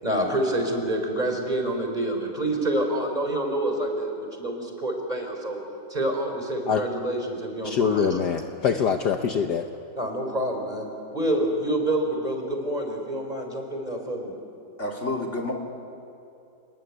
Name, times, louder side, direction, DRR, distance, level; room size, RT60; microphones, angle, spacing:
voice 1, 0.0-5.6 5.9-8.3 9.9-14.3, right 1 dB, 20° right, 3 dB, 4.1 m, -27 dB
voice 2, 7.6-9.7, left 7 dB, 60° left, 5 dB, 1.5 m, -24 dB
voice 3, 14.8-15.5, left 2 dB, 35° left, 3 dB, 3.1 m, -29 dB
29.5 x 20.5 x 9.6 m, 2.7 s
omnidirectional pair, 2.2 m